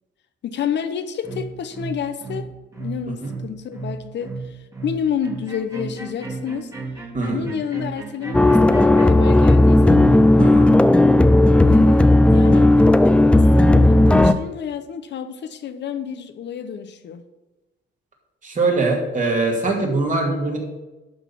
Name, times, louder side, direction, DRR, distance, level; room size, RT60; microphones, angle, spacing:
voice 1, 0.4-2.5 2.8-4.6 4.8-6.7 7.3-10.2 11.6-12.9 13.3-17.2, left 8 dB, 65° left, 9 dB, 0.8 m, -29 dB
sound 1, 1.2-9.3, right 3 dB, 15° right, 2.0 m, -34 dB
voice 2, 7.1-7.5 10.4-10.7 18.4-20.6, right 3 dB, 40° right, 0 dB, 2.6 m, -22 dB
sound 2, 8.3-14.3, left 1 dB, 5° left, 0.5 m, -13 dB
11.5 x 4.0 x 7.3 m, 1.1 s
cardioid pair, 90°, 20 cm